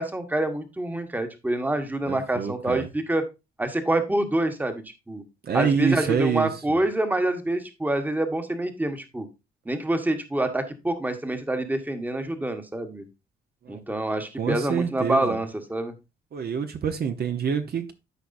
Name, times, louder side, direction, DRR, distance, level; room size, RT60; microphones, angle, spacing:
voice 1, 0.0-3.2 3.6-5.2 5.5-9.3 9.6-13.0 13.7-15.9, right 1 dB, 10° right, 1.2 m, -26 dB
voice 2, 2.1-2.9 5.4-6.5 13.7-13.8 14.4-15.4 16.3-17.9, right 6 dB, 50° right, 0.9 m, -26 dB
12.5 x 4.7 x 2.6 m
cardioid pair, 90°, 20 cm